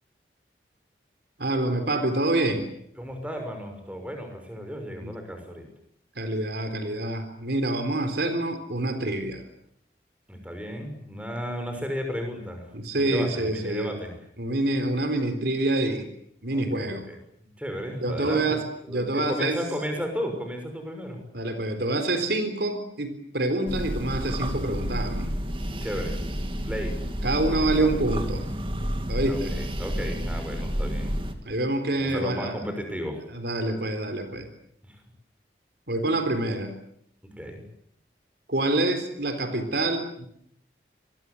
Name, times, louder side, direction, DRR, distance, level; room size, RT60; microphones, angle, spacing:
voice 1, 1.4-2.7 5.0-5.1 6.2-9.4 12.7-14.0 14.4-16.1 16.4-17.1 18.0-18.6 18.9-19.6 21.3-25.3 27.2-28.5 29.1-29.6 31.5-32.6 33.3-34.5 35.9-36.7 38.5-40.3, right 2 dB, 65° right, 8 dB, 3.8 m, -26 dB
voice 2, 3.0-5.6 10.3-12.7 12.9-14.1 16.5-21.2 25.8-26.2 26.6-27.0 27.5-28.0 29.3-31.2 32.0-33.2 34.8-35.0 37.2-37.6, equal, 5° right, 5 dB, 6.2 m, -34 dB
sound 1, 23.7-31.3, equal, 30° right, 2.6 m, -30 dB
27.0 x 22.5 x 8.5 m, 0.71 s
head